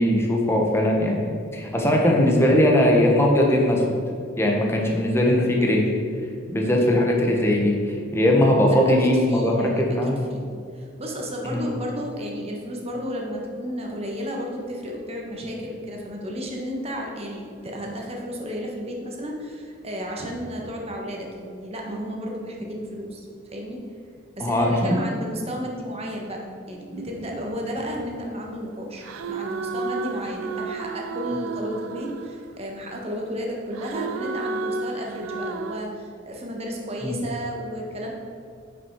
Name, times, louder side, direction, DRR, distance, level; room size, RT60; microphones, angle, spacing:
voice 1, 0.0-3.8 4.4-5.9 6.5-10.2 11.5-11.6 24.4-25.0 37.0-37.2, left 1 dB, 10° left, -1 dB, 1.2 m, -20 dB
voice 2, 8.8-10.0 10.3-23.8 24.4-38.1, equal, 30° right, -1 dB, 1.3 m, -33 dB
sound 1, 26.9-28.5 29.0-32.9 33.7-35.8, right 4 dB, 80° right, 0.4 m, -32 dB
9.5 x 5.9 x 4.7 m, 2.3 s
head